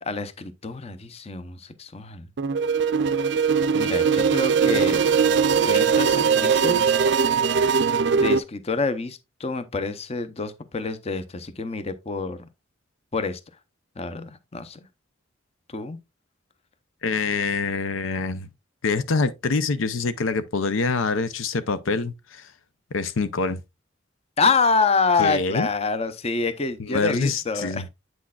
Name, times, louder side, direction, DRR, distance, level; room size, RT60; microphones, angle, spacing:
voice 1, 0.0-2.3 3.7-5.0 5.6-7.0 8.1-12.5 13.1-13.4 14.0-14.8 15.7-16.0 24.4-27.9, left 4 dB, 30° left, 0.6 m, -27 dB
sound 1, 2.4-8.4, right 6 dB, 60° right, 0.4 m, -20 dB
voice 2, 17.0-18.5 18.8-22.4 22.9-23.6 25.2-25.7 26.8-27.8, left 4 dB, 85° left, 0.6 m, -25 dB
8.5 x 6.2 x 2.3 m
head